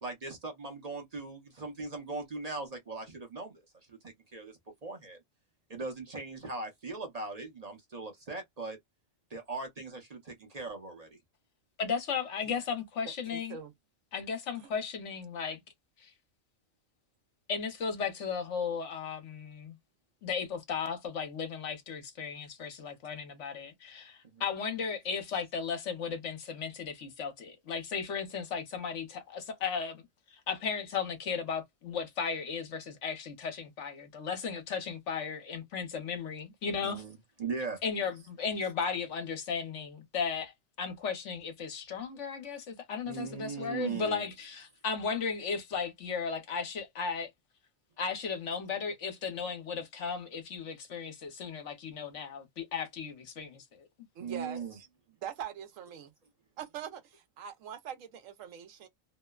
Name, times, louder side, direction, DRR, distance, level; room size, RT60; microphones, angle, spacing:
voice 1, 0.0-3.6 3.9-4.5 4.8-5.2 5.7-8.8 9.3-11.1 36.8-37.1 37.4-37.8 43.1-44.2 54.2-54.8, right 4 dB, 35° right, 0.7 m, -39 dB
voice 2, 11.8-13.6 14.1-15.6 16.0-16.1 17.5-19.8 20.2-37.0 37.8-47.3 48.0-53.9, left 6 dB, 65° left, 1.1 m, -35 dB
voice 3, 13.0-13.7 54.2-54.9 55.2-56.1 56.6-58.9, right 9 dB, 80° right, 1.0 m, -43 dB
2.8 x 2.1 x 2.2 m
omnidirectional pair, 1.3 m